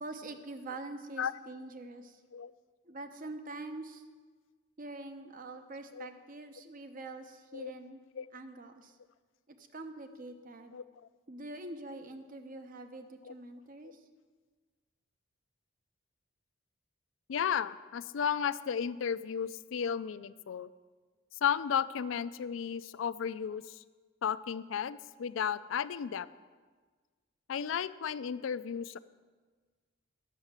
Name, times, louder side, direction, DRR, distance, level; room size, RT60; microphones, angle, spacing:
voice 1, 0.0-2.2 2.8-4.0 4.8-8.0 8.3-9.0 9.5-10.8 11.3-14.0, right 2 dB, 45° right, 7 dB, 0.8 m, -45 dB
voice 2, 17.3-20.7 21.4-23.8 24.2-26.3 27.5-29.0, left 7 dB, 70° left, 15 dB, 0.4 m, -34 dB
10.5 x 6.5 x 7.3 m, 1.4 s
head